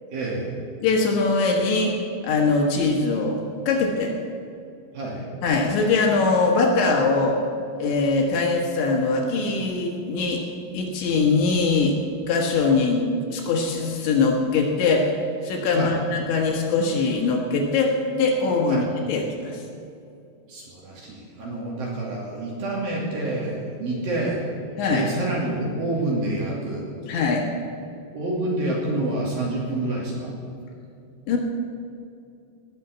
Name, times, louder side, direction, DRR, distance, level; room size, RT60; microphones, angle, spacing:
voice 1, 0.1-0.6 4.9-5.3 15.7-16.0 18.7-18.9 20.5-24.5 24.9-26.9 28.1-30.3, right 2 dB, 50° right, -3 dB, 3.7 m, -28 dB
voice 2, 0.8-2.0 2.2-3.4 3.7-4.2 5.4-7.4 7.8-10.4 10.7-12.0 12.3-15.1 15.4-19.6 24.8-25.1 27.1-27.4 31.3-31.4, left 3 dB, 70° left, 0 dB, 3.6 m, -22 dB
19.5 x 7.4 x 8.2 m, 2.5 s
omnidirectional pair, 5.8 m